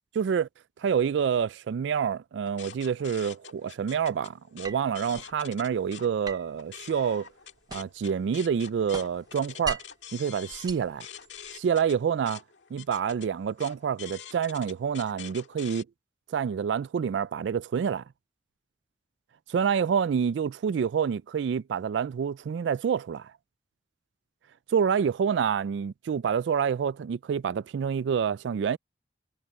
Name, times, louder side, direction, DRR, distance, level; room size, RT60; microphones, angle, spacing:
voice 1, 0.2-0.5 0.8-7.3 7.7-9.8 10.1-11.1 11.5-12.4 12.7-15.9 16.3-18.0 19.5-23.3 24.7-28.8, right 7 dB, 70° right, 0.3 m, -27 dB
sound 1, 2.5-6.1 6.5-15.8, left 8 dB, 85° left, 1.7 m, -46 dB
sound 2, 4.6-5.4 6.2-8.1 8.4-10.1 10.5-11.6, right 3 dB, 20° right, 0.8 m, -40 dB
head